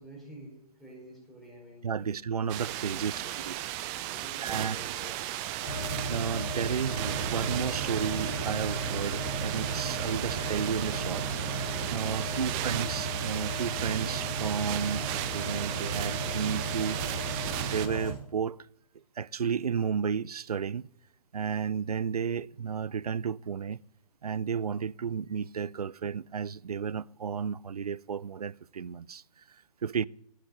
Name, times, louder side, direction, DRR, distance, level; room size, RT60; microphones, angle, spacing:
voice 1, 0.0-2.1 2.9-3.5 3.9-5.3 12.3-12.6, equal, ahead, 4.5 m, -49 dB
voice 2, 1.8-3.5 4.4-4.8 6.1-11.3 11.6-17.0 17.6-18.6 19.2-20.9 21.3-23.8 24.2-29.2 29.8-30.1, right 7 dB, 70° right, 0.4 m, -33 dB
sound 1, 2.5-17.9, right 14 dB, 15° right, 0.5 m, -35 dB
sound 2, 5.6-18.1, right 2 dB, 25° left, 4.4 m, -35 dB
14.5 x 7.7 x 9.2 m
figure-of-eight pair, 130°, 20 cm